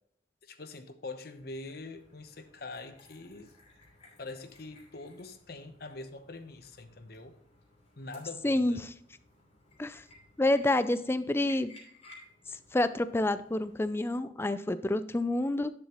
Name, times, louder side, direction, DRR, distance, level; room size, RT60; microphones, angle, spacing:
voice 1, 0.4-3.5 4.2-7.3 8.0-8.8, left 2 dB, 55° left, 0.9 m, -44 dB
sound 1, 1.3-13.9, left 2 dB, 40° left, 2.9 m, -58 dB
voice 2, 8.4-8.9 9.8-10.0 10.4-11.7 12.7-15.7, left 1 dB, 15° left, 0.4 m, -28 dB
11.0 x 7.1 x 3.0 m
head